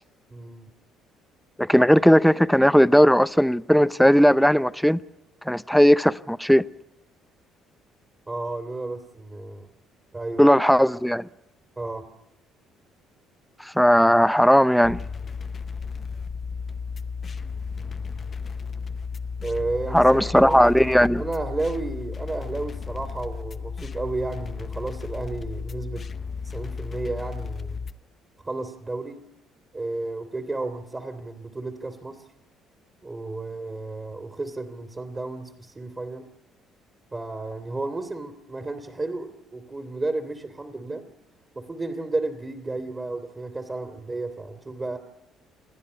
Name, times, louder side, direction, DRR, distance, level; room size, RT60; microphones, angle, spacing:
voice 1, 0.3-0.7 8.3-9.7 10.1-10.4 11.8-12.1 19.4-20.6 21.2-26.0 26.5-27.8 28.4-29.2 29.7-32.2 33.0-36.3 37.1-41.0 41.5-45.0, right 2 dB, 25° right, 2.7 m, -32 dB
voice 2, 1.6-5.0 5.5-6.6 10.4-11.3 13.6-15.0 19.9-21.2, equal, ahead, 0.7 m, -17 dB
sound 1, 14.8-27.9, left 5 dB, 40° left, 0.8 m, -34 dB
29.0 x 10.0 x 9.7 m
hypercardioid pair, 55°, 0 cm